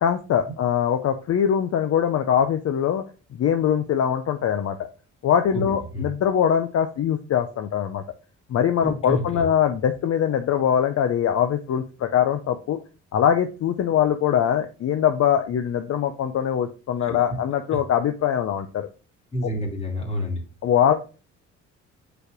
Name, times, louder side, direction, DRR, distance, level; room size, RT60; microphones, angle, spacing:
voice 1, 0.0-3.0 3.3-4.9 5.2-8.0 8.5-12.8 13.1-18.9 20.6-21.0, left 9 dB, 55° left, 8 dB, 0.6 m, -22 dB
voice 2, 5.5-6.1 8.8-9.5 17.0-17.2 17.7-17.8 19.3-20.4, left 1 dB, 20° left, 0 dB, 2.6 m, -29 dB
5.3 x 4.3 x 4.8 m, 0.34 s
cardioid pair, 90°, 30 cm